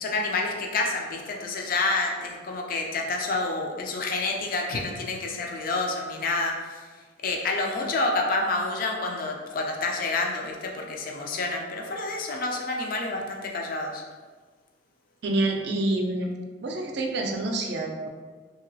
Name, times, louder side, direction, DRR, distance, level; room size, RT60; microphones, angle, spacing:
voice 1, 0.0-6.9 7.2-14.0, left 3 dB, 45° left, 1 dB, 0.4 m, -28 dB
voice 2, 15.2-16.3 16.6-18.1, right 2 dB, 60° right, 2 dB, 0.4 m, -27 dB
2.9 x 2.8 x 2.7 m, 1.4 s
head